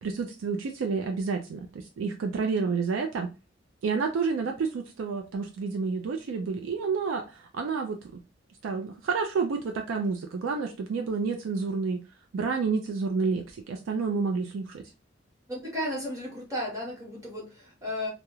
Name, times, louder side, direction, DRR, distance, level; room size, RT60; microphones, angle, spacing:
voice 1, 0.0-3.3 3.8-8.2 8.6-12.0 12.3-14.8, right 4 dB, 85° right, 0.4 m, -29 dB
voice 2, 15.5-18.1, left 1 dB, 15° right, 1.0 m, -34 dB
2.3 x 2.0 x 2.9 m
head